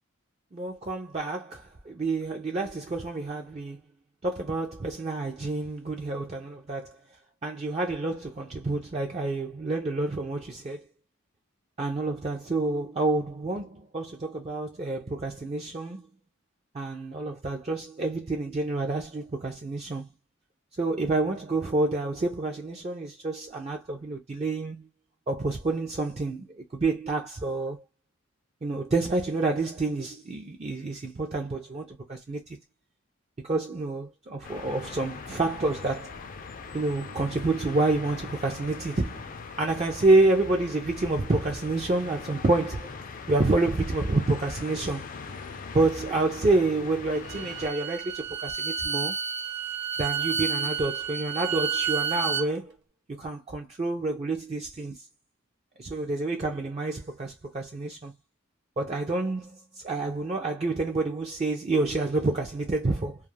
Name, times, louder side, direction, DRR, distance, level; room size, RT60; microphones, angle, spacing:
voice 1, 0.5-3.8 4.2-7.0 7.4-10.9 11.8-16.1 16.7-20.1 20.8-24.9 25.3-27.8 28.6-32.6 33.4-36.2 36.7-39.3 39.6-43.0 43.3-45.0 45.7-49.2 50.0-52.8 53.1-55.0 55.8-58.1 58.8-63.2, right 2 dB, 30° right, 0.4 m, -28 dB
sound 1, 34.4-47.7, left 4 dB, 40° left, 0.4 m, -41 dB
Bowed string instrument, 47.1-52.5, right 6 dB, 55° right, 0.8 m, -30 dB
2.3 x 2.3 x 3.1 m
head